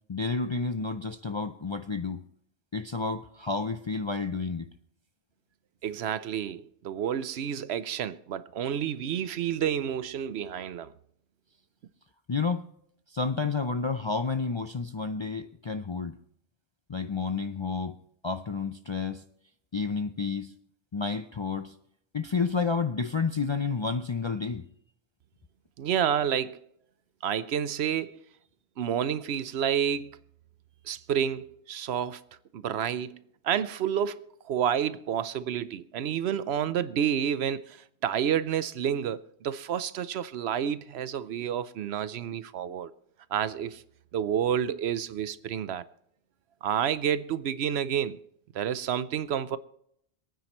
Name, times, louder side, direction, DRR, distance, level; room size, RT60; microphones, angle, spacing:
voice 1, 0.1-2.2 2.7-4.7 12.3-12.7 13.1-16.1 16.9-18.0 18.2-19.2 19.7-20.5 20.9-21.7 22.1-24.6, left 4 dB, 40° left, 0.4 m, -30 dB
voice 2, 5.8-10.9 25.8-26.6 27.2-28.2 28.8-30.1 30.8-32.2 32.5-33.2 33.4-42.9 43.3-43.8 44.1-45.8 46.6-48.2 48.5-49.6, right 9 dB, 75° right, 0.9 m, -29 dB
26.5 x 9.2 x 3.0 m
omnidirectional pair, 1.1 m